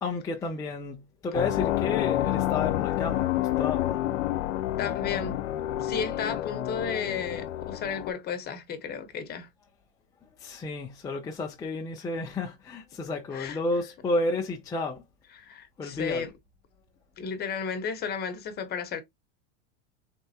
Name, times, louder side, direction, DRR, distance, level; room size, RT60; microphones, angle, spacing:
voice 1, 0.0-4.0 10.4-15.0 15.8-16.3, left 2 dB, 10° left, 0.4 m, -32 dB
sound 1, 1.3-8.1, left 14 dB, 80° left, 0.7 m, -29 dB
voice 2, 4.8-5.4 5.8-9.5 13.3-13.6 15.3-16.3 17.2-19.0, left 6 dB, 25° left, 1.0 m, -33 dB
4.2 x 3.4 x 2.8 m
supercardioid pair, 140°, 37 cm